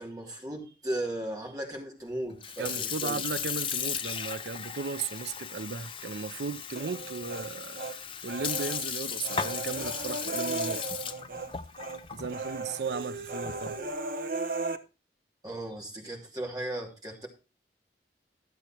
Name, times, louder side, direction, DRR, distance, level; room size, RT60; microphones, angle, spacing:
voice 1, 0.0-3.2 15.4-17.3, right 1 dB, 20° right, 3.0 m, -36 dB
Sink (filling or washing) / Fill (with liquid), 2.3-13.8, left 7 dB, 30° left, 0.7 m, -36 dB
voice 2, 2.6-8.0 8.2-10.8 12.1-13.8, right 5 dB, 70° right, 0.6 m, -36 dB
Human voice, 6.8-8.0 8.3-11.5 11.8-12.0 12.3-14.8, right 3 dB, 55° right, 1.1 m, -36 dB
13.5 x 7.9 x 4.4 m
head